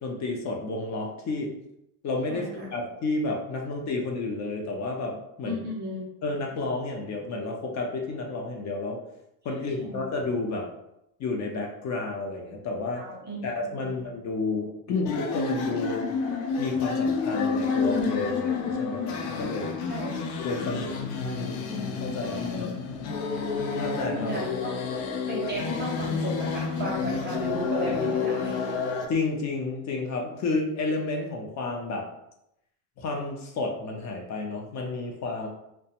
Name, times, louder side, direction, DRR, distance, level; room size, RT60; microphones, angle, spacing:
voice 1, 0.0-1.5 2.0-5.7 6.2-9.0 9.4-10.7 11.2-13.0 13.4-16.1 16.6-19.8 20.4-20.9 21.2-22.5 23.8-24.4 29.1-32.1 33.0-35.5, left 3 dB, 35° left, 1 dB, 0.5 m, -31 dB
voice 2, 2.3-2.7 5.4-6.1 9.5-10.0 12.9-13.4 13.7-14.0 19.9-20.2 22.2-22.8 24.1-24.7 25.3-28.8, right 1 dB, 25° right, -4 dB, 0.3 m, -35 dB
sound 1, 15.1-29.1, left 5 dB, 75° left, 0.7 m, -29 dB
2.4 x 2.2 x 2.8 m, 0.83 s
supercardioid pair, 110°, 50 cm